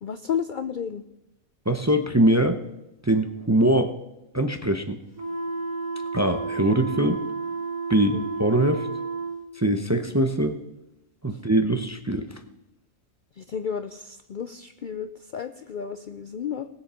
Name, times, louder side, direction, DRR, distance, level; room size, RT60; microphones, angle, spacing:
voice 1, 0.0-1.0 8.1-8.2 13.4-16.7, left 7 dB, 80° left, 10 dB, 0.4 m, -32 dB
voice 2, 1.7-2.6 3.0-3.9 4.3-5.0 6.1-7.2 7.9-8.9 9.5-10.6 11.2-12.3, right 1 dB, 20° right, 7 dB, 0.5 m, -22 dB
sound 1, 5.1-9.4, right 4 dB, 60° right, 4.4 m, -31 dB
19.0 x 7.2 x 5.6 m, 0.89 s
omnidirectional pair, 1.5 m